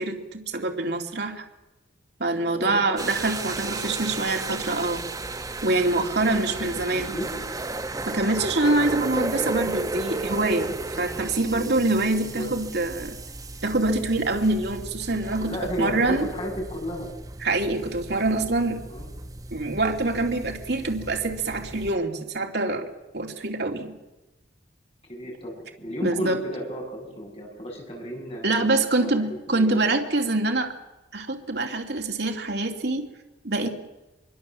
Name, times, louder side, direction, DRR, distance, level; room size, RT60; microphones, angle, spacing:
voice 1, 0.0-1.4 2.2-5.0 5.6-7.1 8.1-13.2 13.6-16.3 17.4-18.8 19.5-22.8 23.1-23.9 26.0-26.4 28.4-30.7 31.1-33.1 33.4-33.7, right 2 dB, 60° right, 2 dB, 2.7 m, -25 dB
voice 2, 2.4-2.8 6.3-7.3 11.4-11.7 12.1-12.5 15.4-17.1 18.9-19.1 21.6-21.7 25.1-29.9, equal, 35° left, 1 dB, 7.5 m, -34 dB
sound 1, 3.0-22.0, right 2 dB, 20° right, 0.9 m, -34 dB
25.0 x 23.0 x 7.6 m, 1.0 s
head